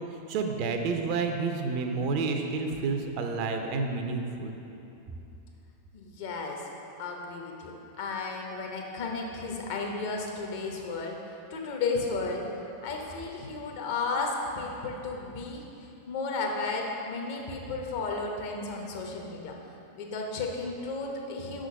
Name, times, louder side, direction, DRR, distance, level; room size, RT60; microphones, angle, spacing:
voice 1, 0.3-4.5, right 4 dB, 45° right, 4 dB, 0.5 m, -29 dB
voice 2, 5.9-6.7 7.0-12.5 12.8-19.5 19.9-21.7, left 3 dB, 50° left, 0 dB, 0.8 m, -34 dB
6.1 x 3.8 x 5.2 m, 2.8 s
figure-of-eight pair, 90°, 0 cm